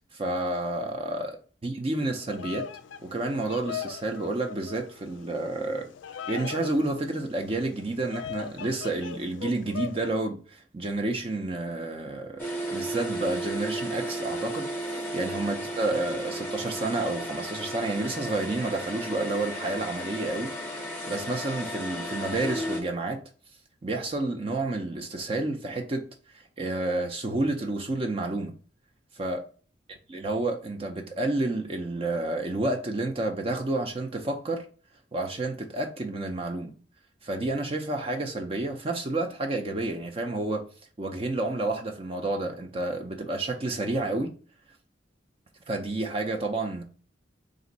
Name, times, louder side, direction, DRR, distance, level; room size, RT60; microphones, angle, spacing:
voice 1, 0.1-1.4 1.6-2.7 3.0-5.9 6.3-14.7 15.1-20.5 20.8-23.2 23.8-26.0 26.3-28.5 29.1-29.4 29.9-34.7 35.1-36.7 37.2-40.7 41.0-44.3 45.7-46.8, right 2 dB, 30° right, 0.4 m, -30 dB
Bird vocalization bird call bird song, 2.1-10.1, left 8 dB, 80° left, 0.4 m, -40 dB
sound 1, 12.4-22.8, equal, 10° left, 0.8 m, -34 dB
4.0 x 2.5 x 4.0 m
head